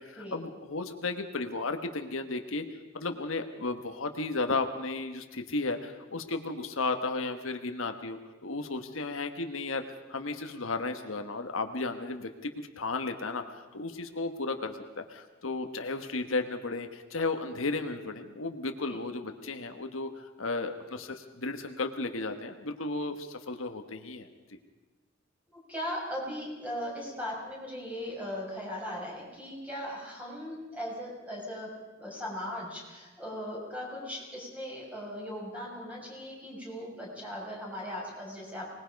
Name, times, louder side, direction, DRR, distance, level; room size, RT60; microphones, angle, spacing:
voice 1, 0.0-2.6 2.9-9.8 10.1-24.3, left 3 dB, 80° left, 6 dB, 1.4 m, -34 dB
voice 2, 25.7-31.7 32.0-38.7, equal, 5° right, -3 dB, 6.5 m, -38 dB
24.5 x 20.0 x 5.3 m, 1.2 s
head